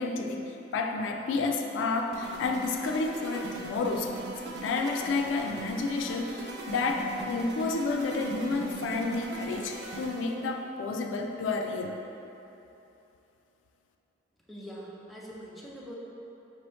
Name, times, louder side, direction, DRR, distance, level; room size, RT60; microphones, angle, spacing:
voice 1, 0.0-4.1 4.4-12.0, left 3 dB, 85° left, 3 dB, 0.3 m, -30 dB
sound 1, 2.1-10.5, right 2 dB, 60° right, 0.4 m, -41 dB
voice 2, 14.5-15.9, equal, ahead, -6 dB, 0.4 m, -43 dB
4.4 x 3.1 x 3.0 m, 3.0 s
head